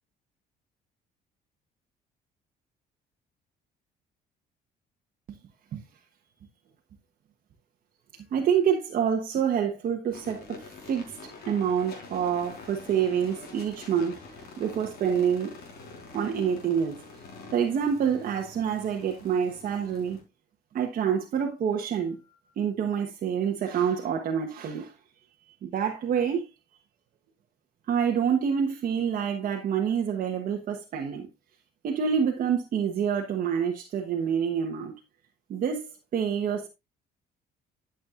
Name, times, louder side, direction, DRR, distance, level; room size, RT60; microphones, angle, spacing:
voice 1, 8.1-15.5 16.1-17.0 17.5-20.2 20.7-22.2 22.6-24.9 25.6-26.5 27.9-31.3 31.8-34.9 35.5-36.7, right 7 dB, 55° right, 1.3 m, -27 dB
sound 1, 10.1-20.2, left 4 dB, 65° left, 4.3 m, -46 dB
12.0 x 7.4 x 2.5 m
cardioid pair, 110°, 17 cm